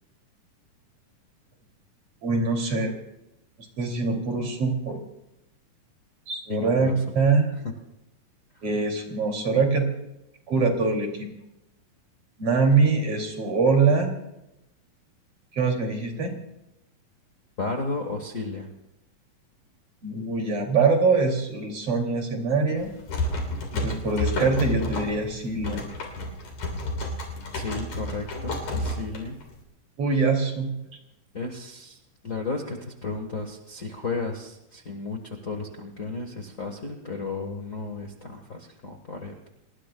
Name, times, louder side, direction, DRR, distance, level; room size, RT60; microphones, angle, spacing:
voice 1, 2.2-2.9 3.8-5.0 6.3-7.5 8.6-9.9 10.5-11.3 12.4-14.1 15.5-16.3 20.0-22.9 23.7-25.8 30.0-30.7, right 4 dB, 45° right, 2 dB, 3.4 m, -23 dB
voice 2, 6.5-6.9 8.6-8.7 17.6-18.7 27.5-29.4 31.3-32.0 32.2-39.5, left 3 dB, 85° left, 2 dB, 0.7 m, -33 dB
sound 1, 22.8-29.6, left 1 dB, 65° left, 4.4 m, -31 dB
30.0 x 20.0 x 2.3 m, 0.89 s
omnidirectional pair, 4.0 m